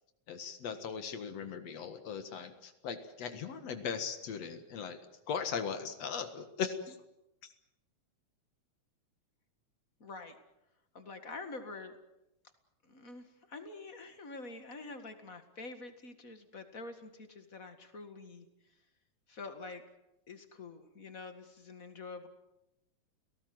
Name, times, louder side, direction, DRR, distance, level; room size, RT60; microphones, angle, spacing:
voice 1, 0.3-5.0 5.3-7.0, left 6 dB, 60° left, 9 dB, 2.6 m, -38 dB
voice 2, 10.0-10.4 10.9-12.0 12.9-18.5 19.3-19.8 20.3-22.3, left 3 dB, 30° left, 8 dB, 1.9 m, -46 dB
30.0 x 18.0 x 7.9 m, 0.92 s
omnidirectional pair, 3.5 m